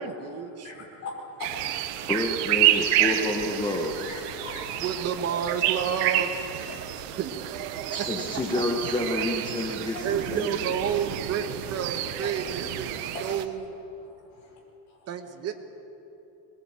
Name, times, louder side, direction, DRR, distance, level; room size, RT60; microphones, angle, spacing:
voice 1, 0.0-0.7 4.8-6.5 7.1-7.9 8.5-8.6 9.6-9.7 10.0-13.6 15.1-15.5, right 8 dB, 35° right, 7 dB, 1.5 m, -31 dB
voice 2, 0.6-2.1 2.8-5.1 5.5-5.6 6.9-7.2 9.2-9.3 9.9-10.0 11.8-11.9 12.2-12.3 13.1-13.2 14.0-14.6 14.9-15.1, left 3 dB, 40° left, -2 dB, 5.6 m, -42 dB
sound 1, 1.4-13.5, right 12 dB, 85° right, 1.5 m, -29 dB
voice 3, 2.1-4.1 7.9-10.7, left 1 dB, 10° left, 1 dB, 1.4 m, -29 dB
22.5 x 19.5 x 9.1 m, 2.9 s
cardioid pair, 175°, 46 cm